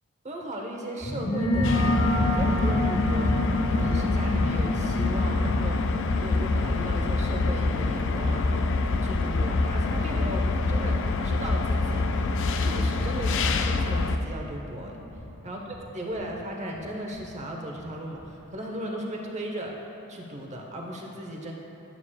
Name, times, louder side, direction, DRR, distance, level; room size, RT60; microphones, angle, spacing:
voice 1, 0.2-8.6 9.0-12.1 12.6-15.0 15.4-19.8 20.1-21.5, right 1 dB, 30° right, 0 dB, 0.9 m, -36 dB
sound 1, 1.0-17.3 17.5-17.6 17.9-18.3, left 1 dB, 30° left, 0.7 m, -31 dB
sound 2, 1.3-6.0, equal, 75° left, 1.9 m, -36 dB
sound 3, 1.6-14.2, left 3 dB, 60° left, 0.4 m, -26 dB
11.5 x 8.6 x 2.4 m, 3.0 s
head